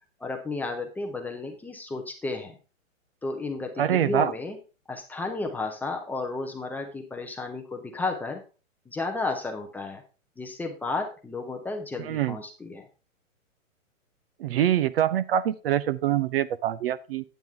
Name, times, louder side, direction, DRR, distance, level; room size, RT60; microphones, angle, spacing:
voice 1, 0.2-2.6 3.2-4.6 4.9-8.4 8.9-10.0 10.4-12.9, left 3 dB, 5° left, 3 dB, 0.5 m, -32 dB
voice 2, 3.8-4.3 12.0-12.4 14.4-17.2, right 11 dB, 50° right, 17 dB, 0.5 m, -25 dB
9.1 x 7.9 x 3.5 m, 0.33 s
hypercardioid pair, 140°, 39 cm